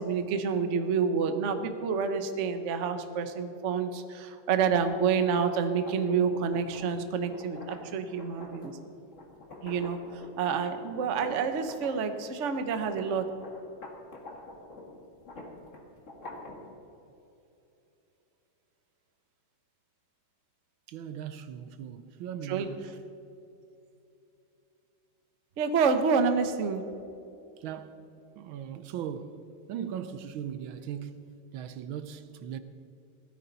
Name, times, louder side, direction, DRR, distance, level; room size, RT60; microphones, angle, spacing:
voice 1, 0.0-8.8 9.6-10.0 10.4-13.3 22.5-22.7 25.6-26.8, right 6 dB, 50° right, 0.9 m, -28 dB
sound 1, 5.2-12.2 12.6-16.7, left 2 dB, 35° left, 2.0 m, -46 dB
voice 2, 20.9-22.9 27.6-32.6, right 9 dB, 75° right, 1.4 m, -39 dB
17.0 x 13.5 x 4.0 m
omnidirectional pair, 2.3 m